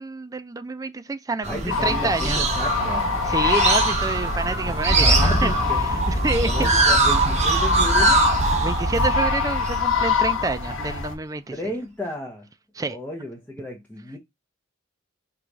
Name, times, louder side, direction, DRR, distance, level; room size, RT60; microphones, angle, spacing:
voice 1, 0.0-2.4 3.3-5.5 5.8-6.7 8.6-11.5 12.8-13.0, right 3 dB, 15° right, 0.3 m, -28 dB
sound 1, 1.4-10.5, right 3 dB, 35° right, 0.8 m, -23 dB
voice 2, 1.5-3.1 4.6-5.9 6.4-8.2 11.5-12.5 12.9-14.2, left 1 dB, 5° left, 0.7 m, -33 dB
sound 2, 1.7-11.1, left 4 dB, 75° left, 0.9 m, -25 dB
Engine starting, 4.9-10.4, equal, 55° left, 1.5 m, -26 dB
4.6 x 2.3 x 3.9 m
head